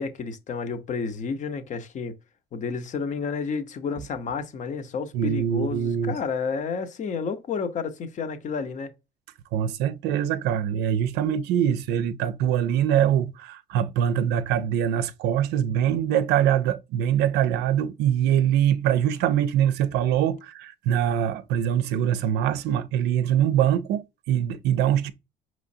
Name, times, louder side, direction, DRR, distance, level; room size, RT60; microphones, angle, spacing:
voice 1, 0.0-2.2 2.5-8.9, left 5 dB, 45° left, 0.7 m, -31 dB
voice 2, 5.1-6.1 9.5-25.1, right 10 dB, 85° right, 0.4 m, -23 dB
5.0 x 3.0 x 2.6 m
cardioid pair, 110°, 17 cm